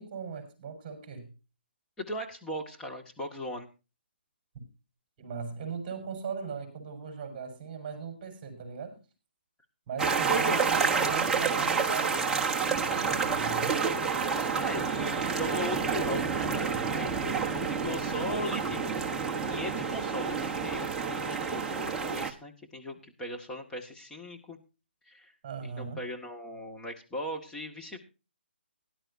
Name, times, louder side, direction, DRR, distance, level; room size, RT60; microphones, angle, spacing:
voice 1, 0.0-1.3 4.6-4.7 5.2-9.0 9.9-13.8 25.4-26.0, right 6 dB, 25° right, 7 dB, 5.4 m, -39 dB
voice 2, 2.0-3.7 10.2-10.7 14.5-17.1 17.7-19.0 19.5-24.6 25.1-25.3 25.6-28.0, equal, 10° left, 2 dB, 1.9 m, -38 dB
sound 1, 10.0-22.3, right 5 dB, 10° right, 1.2 m, -29 dB
18.5 x 11.5 x 2.7 m, 0.31 s
hypercardioid pair, 155°, 6 cm